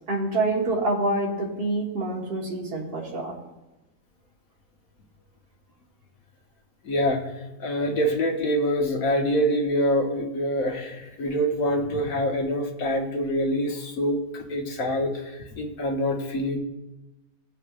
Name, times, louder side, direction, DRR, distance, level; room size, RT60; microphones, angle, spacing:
voice 1, 0.1-3.3, right 2 dB, 45° right, -2 dB, 1.6 m, -26 dB
voice 2, 6.8-7.2 7.6-16.6, equal, 75° left, 2 dB, 1.5 m, -25 dB
16.0 x 5.8 x 2.5 m, 1.0 s
omnidirectional pair, 1.5 m